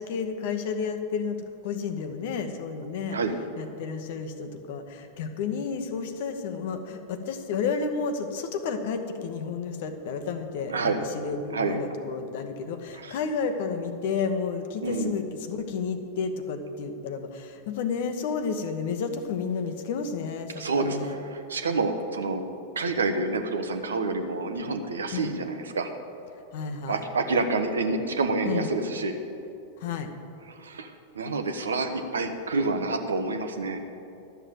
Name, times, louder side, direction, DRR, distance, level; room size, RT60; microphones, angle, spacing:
voice 1, 0.0-1.4 1.6-3.2 3.6-21.2 25.1-25.3 26.5-27.0 28.4-28.7 29.8-30.1, left 5 dB, 50° left, 8 dB, 1.0 m, -31 dB
voice 2, 10.7-11.0 11.5-11.8 12.9-13.2 14.8-15.2 20.6-22.4 22.8-25.9 26.9-29.1 30.5-33.8, right 3 dB, 70° right, 7 dB, 1.0 m, -28 dB
12.0 x 7.0 x 7.8 m, 2.7 s
figure-of-eight pair, 90°, 0 cm